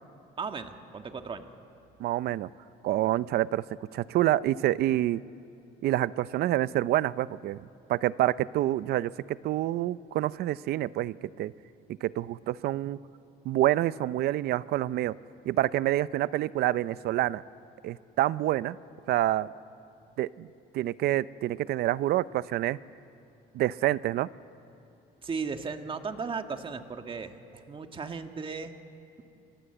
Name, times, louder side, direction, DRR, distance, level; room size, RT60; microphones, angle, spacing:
voice 1, 0.4-1.4 25.2-28.7, right 5 dB, 30° right, 6 dB, 1.7 m, -36 dB
voice 2, 2.0-2.5 2.8-3.6 3.9-5.2 5.8-7.6 7.9-11.5 11.9-13.0 13.4-15.2 15.4-17.4 17.8-18.8 19.1-19.5 20.2-20.5 20.7-22.8 23.5-24.3, right 14 dB, 70° right, 17 dB, 0.6 m, -27 dB
28.5 x 21.0 x 8.0 m, 2.8 s
cardioid pair, 110°, 17 cm